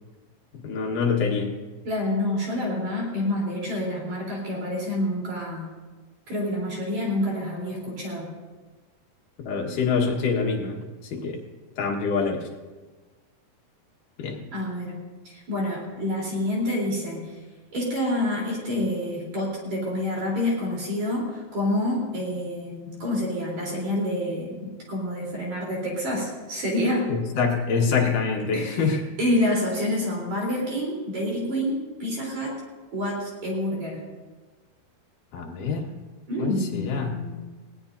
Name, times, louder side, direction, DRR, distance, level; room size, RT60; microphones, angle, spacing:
voice 1, 0.6-1.5 9.5-11.4 11.8-12.5 14.2-14.4 27.1-29.0 35.3-35.9 36.4-37.2, left 5 dB, 65° left, 1 dB, 3.0 m, -25 dB
voice 2, 1.8-5.6 6.3-8.3 14.5-15.0 15.2-17.2 17.7-27.1 28.0-28.1 28.5-32.5 32.9-34.0 36.3-37.3, left 1 dB, 50° right, -3 dB, 4.9 m, -28 dB
19.5 x 18.0 x 2.7 m, 1.3 s
omnidirectional pair, 4.1 m